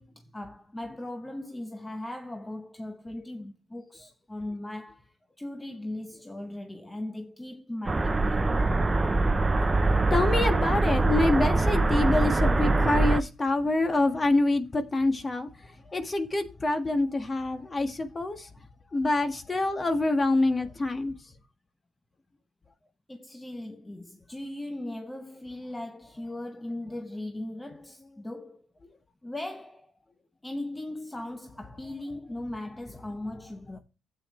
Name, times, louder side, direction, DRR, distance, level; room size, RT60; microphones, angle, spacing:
voice 1, 0.0-8.7 23.1-28.7 29.2-29.9 30.4-33.8, left 1 dB, 15° left, 0.9 m, -38 dB
sound 1, 7.9-13.2, right 2 dB, 25° right, 0.7 m, -23 dB
voice 2, 9.7-18.5 18.9-21.1, left 2 dB, 30° left, 1.7 m, -26 dB
12.0 x 8.6 x 3.2 m
cardioid pair, 80°, 0 cm